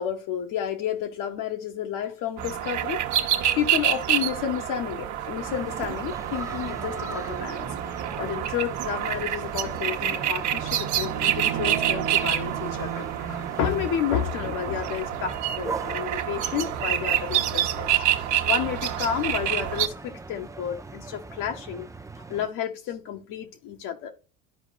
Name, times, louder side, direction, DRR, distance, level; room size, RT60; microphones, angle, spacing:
voice 1, 0.0-3.0 3.6-7.7 8.2-17.9 18.5-21.9 22.3-24.1, left 9 dB, 65° left, 1.8 m, -31 dB
sound 1, 2.4-19.9, right 11 dB, 55° right, 1.3 m, -27 dB
sound 2, 5.4-22.5, right 3 dB, 10° right, 0.6 m, -41 dB
13.0 x 4.9 x 2.5 m
hypercardioid pair, 80°, 35 cm